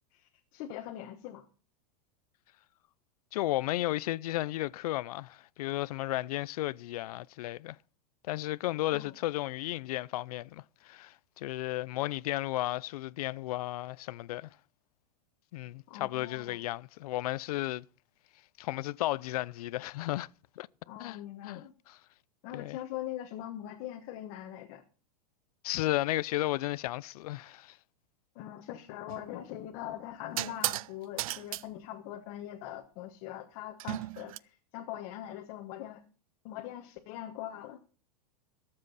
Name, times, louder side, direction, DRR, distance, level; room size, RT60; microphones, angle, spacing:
voice 1, 0.1-1.4 8.9-9.1 15.9-16.6 20.9-21.7 22.4-24.8 28.3-36.0 36.4-37.8, left 12 dB, 40° left, 1.2 m, -42 dB
voice 2, 3.3-7.8 8.3-14.6 15.5-17.9 18.6-20.3 20.6-20.7 21.0-22.0 22.5-22.8 25.6-27.8, left 16 dB, 65° left, 0.5 m, -34 dB
sound 1, 29.1-29.3 30.4-30.9 31.2-31.6 33.8-34.4, right 16 dB, 55° right, 0.5 m, -34 dB
22.5 x 7.6 x 4.1 m
supercardioid pair, 165°, 21 cm